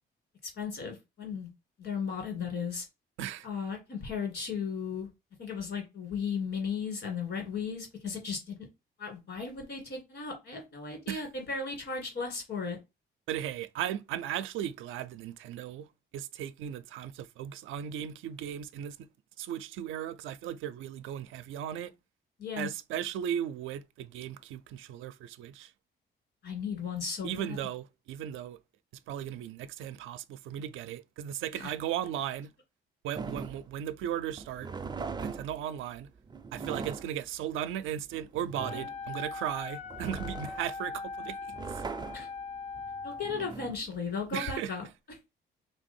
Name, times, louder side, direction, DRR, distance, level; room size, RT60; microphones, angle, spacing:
voice 1, 0.6-1.5 1.8-2.8 3.4-5.1 5.4-8.6 9.0-12.8 22.4-22.7 26.4-27.6 31.5-31.7 42.1-42.3 43.0-44.9, left 5 dB, 65° left, 2.2 m, -35 dB
voice 2, 13.3-15.9 16.1-19.1 19.4-21.9 22.6-25.7 27.2-28.6 29.1-32.5 33.0-34.7 35.2-36.1 36.5-41.6 44.3-44.7, right 10 dB, 85° right, 0.5 m, -36 dB
sound 1, 33.1-44.5, right 4 dB, 20° right, 0.4 m, -41 dB
Wind instrument woodwind instrument, 38.5-43.3, left 4 dB, 35° left, 0.5 m, -40 dB
3.3 x 3.1 x 4.3 m
cardioid pair, 90°, 20 cm